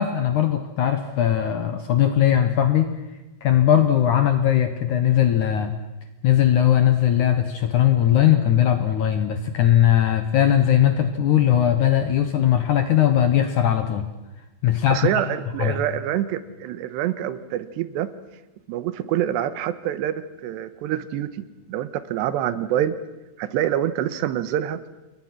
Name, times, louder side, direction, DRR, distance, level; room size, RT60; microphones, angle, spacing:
voice 1, 0.0-2.9 3.4-5.7 6.2-14.1 14.6-15.1 15.6-15.8, left 10 dB, 70° left, 8 dB, 1.9 m, -19 dB
voice 2, 14.9-18.1 18.7-23.0 23.4-24.8, right 11 dB, 85° right, 13 dB, 3.2 m, -26 dB
28.0 x 21.0 x 6.1 m, 1.1 s
omnidirectional pair, 4.9 m